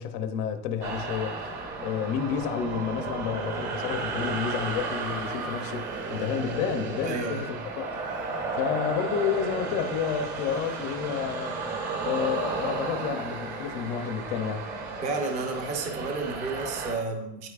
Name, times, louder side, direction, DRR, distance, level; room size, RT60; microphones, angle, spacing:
voice 1, 0.0-1.3 1.8-7.9 8.5-11.6 12.0-14.7, left 7 dB, 30° left, 8 dB, 0.5 m, -30 dB
sound 1, 0.8-17.0, right 4 dB, 45° right, 1.6 m, -33 dB
voice 2, 7.0-7.5 15.0-17.5, right 3 dB, 20° right, 4 dB, 0.7 m, -31 dB
Crying sobbing / Screech, 7.0-7.6 7.9-9.4 10.2-10.9, right 4 dB, 85° right, 1.8 m, -46 dB
9.2 x 8.2 x 2.4 m, 0.83 s
supercardioid pair, 175°, 32 cm